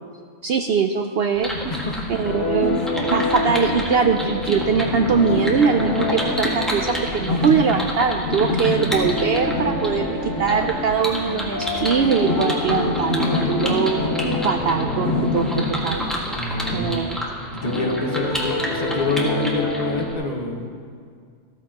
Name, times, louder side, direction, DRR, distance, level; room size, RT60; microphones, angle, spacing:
voice 1, 0.4-1.5 2.1-2.8 3.1-14.0 14.4-16.0 16.7-17.2, right 5 dB, 65° right, 5 dB, 0.6 m, -22 dB
sound 1, 1.4-20.1, equal, ahead, 1.6 m, -31 dB
sound 2, 1.5-17.0, left 2 dB, 50° left, 1.4 m, -28 dB
voice 2, 1.7-2.1 16.4-20.6, left 2 dB, 30° left, 1 dB, 1.3 m, -26 dB
sound 3, 2.2-20.2, left 1 dB, 90° left, 1.8 m, -28 dB
15.0 x 14.0 x 2.9 m, 2.1 s
omnidirectional pair, 1.4 m